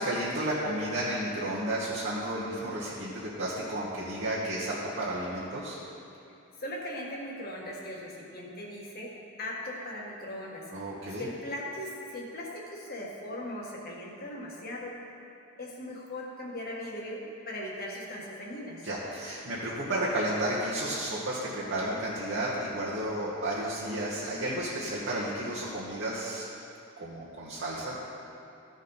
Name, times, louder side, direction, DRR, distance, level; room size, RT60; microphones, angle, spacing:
voice 1, 0.0-5.8 10.7-11.3 18.8-26.4 27.0-28.0, right 1 dB, 55° right, -8 dB, 1.4 m, -32 dB
voice 2, 6.6-10.7 11.1-15.0 15.6-18.9, left 1 dB, 45° left, -3 dB, 1.6 m, -39 dB
15.0 x 5.2 x 4.0 m, 2.7 s
head